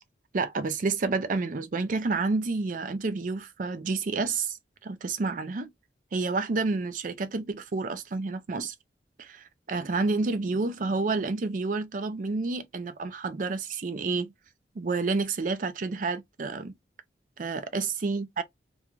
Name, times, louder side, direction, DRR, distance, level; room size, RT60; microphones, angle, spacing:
voice 1, 0.3-4.6 4.8-5.7 6.1-8.7 9.2-14.3 14.8-16.7 17.4-18.4, right 3 dB, 45° right, 0.4 m, -29 dB
2.4 x 2.2 x 3.0 m
head